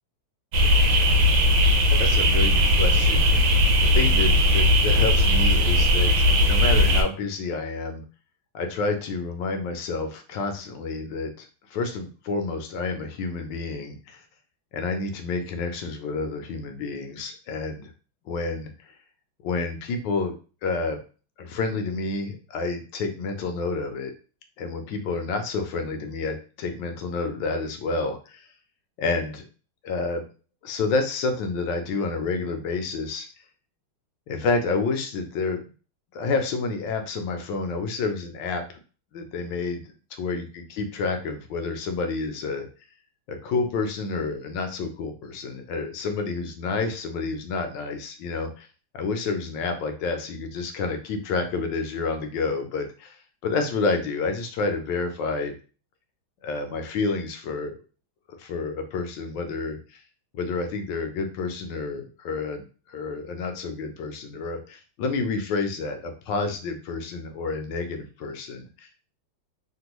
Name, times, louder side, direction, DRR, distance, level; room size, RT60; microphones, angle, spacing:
sound 1, 0.5-7.0, left 1 dB, 85° right, 1.4 m, -19 dB
voice 1, 1.9-3.3 3.8-8.0 8.5-14.2 14.7-17.9 18.2-19.0 19.4-20.3 20.6-21.0 21.4-24.1 24.6-28.5 29.0-29.5 29.8-30.3 30.6-33.3 34.3-35.7 36.1-38.8 39.1-39.8 40.2-42.7 43.3-48.7 48.9-55.5 56.4-57.7 58.3-60.0 60.3-69.1, left 4 dB, 75° left, 6 dB, 1.1 m, -29 dB
3.5 x 2.2 x 2.9 m, 0.37 s
omnidirectional pair, 2.2 m